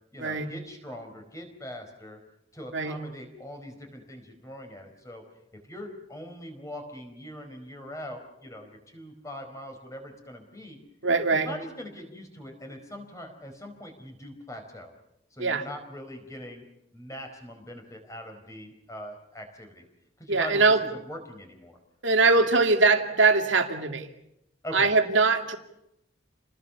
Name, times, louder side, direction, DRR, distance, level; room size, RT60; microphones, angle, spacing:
voice 1, 0.1-2.2 2.5-5.2 5.5-10.8 11.3-14.9 15.3-16.7 16.9-19.8 20.2-21.8 24.6-24.9, equal, 15° left, 4 dB, 4.6 m, -42 dB
voice 2, 11.0-11.5 15.4-15.6 20.3-20.8 22.0-24.1 24.7-25.6, right 3 dB, 75° right, 5 dB, 2.4 m, -22 dB
28.5 x 20.5 x 7.1 m, 0.83 s
head